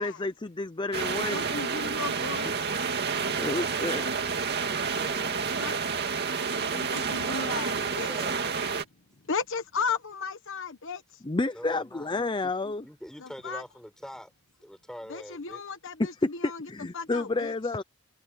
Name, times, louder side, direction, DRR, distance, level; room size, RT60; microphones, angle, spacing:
voice 1, 0.0-1.5 3.4-4.0 11.2-12.8 16.0-16.1 16.4-17.8, left 3 dB, 20° left, 0.6 m, -30 dB
sound 1, 0.9-8.8, right 5 dB, 50° right, 2.2 m, -29 dB
voice 2, 1.3-2.6 5.6-5.7 6.7-8.1 9.3-11.0 13.4-13.6 15.1-16.1 16.4-16.6 16.9-17.5, left 5 dB, 65° left, 1.2 m, -34 dB
voice 3, 3.3-5.9 6.8-8.4 11.5-12.1 12.4-12.5 12.8-14.3 14.6-15.7, equal, 5° left, 6.8 m, -45 dB
head